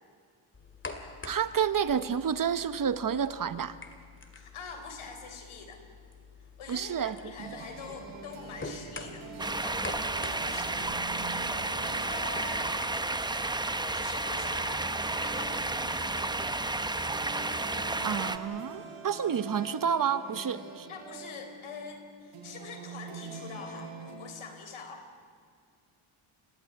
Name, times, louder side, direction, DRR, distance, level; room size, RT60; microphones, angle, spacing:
sound 1, 0.5-17.0, left 3 dB, 25° left, 2.3 m, -48 dB
voice 1, 1.2-3.8 6.7-7.5 18.0-20.9, right 7 dB, 40° right, 13 dB, 0.9 m, -30 dB
voice 2, 4.4-5.8 6.6-9.3 9.6-9.9 10.3-11.0 11.8-12.8 13.8-15.5 20.9-25.1, left 5 dB, 75° left, 5 dB, 4.2 m, -44 dB
sound 2, 7.4-24.1, right 4 dB, 70° right, 6.5 m, -45 dB
sound 3, 9.4-18.4, right 2 dB, 10° right, 0.7 m, -32 dB
30.0 x 15.5 x 9.8 m, 2.1 s
wide cardioid pair, 140°, 49 cm